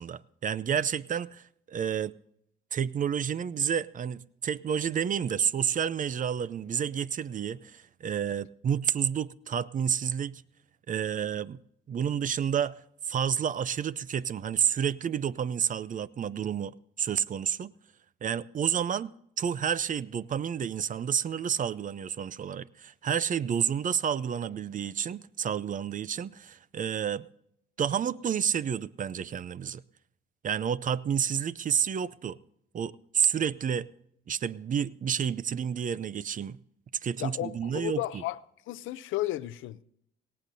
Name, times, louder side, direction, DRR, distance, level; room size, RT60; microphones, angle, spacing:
voice 1, 0.0-2.1 2.7-10.4 10.9-11.6 11.9-12.8 13.1-17.7 18.2-27.3 27.8-29.8 30.4-32.4 32.7-33.9 34.3-36.6 37.0-38.0, right 8 dB, 40° right, 0.5 m, -30 dB
voice 2, 37.2-38.4 38.7-39.8, left 15 dB, 85° left, 0.6 m, -33 dB
18.5 x 16.0 x 2.6 m
cardioid pair, 90°, 20 cm